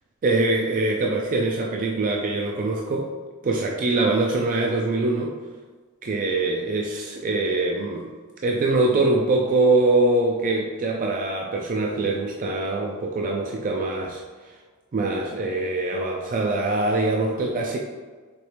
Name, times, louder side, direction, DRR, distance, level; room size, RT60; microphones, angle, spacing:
voice 1, 0.2-3.1 3.4-5.4 6.0-8.1 8.4-14.5 14.9-17.8, right 2 dB, 40° right, 0 dB, 0.3 m, -23 dB
4.3 x 3.0 x 3.2 m, 1.4 s
head